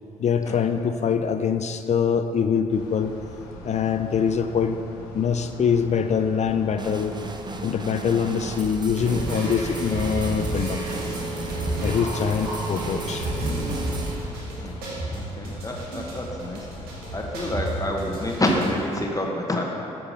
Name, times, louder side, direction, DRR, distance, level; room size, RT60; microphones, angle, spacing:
voice 1, 0.2-3.2 3.6-4.8 5.1-7.1 7.6-10.8 11.8-13.3, left 7 dB, 45° left, 8 dB, 0.5 m, -24 dB
sound 1, 2.7-18.5, left 1 dB, 80° left, 1.0 m, -42 dB
sound 2, 6.8-14.2, right 3 dB, 30° right, 0.8 m, -37 dB
sound 3, 9.0-19.0, right 1 dB, 75° right, 1.6 m, -31 dB
voice 2, 15.1-16.6 17.1-19.6, left 1 dB, 20° left, 0 dB, 1.2 m, -27 dB
8.9 x 6.0 x 5.1 m, 2.7 s
hypercardioid pair, 50°, 16 cm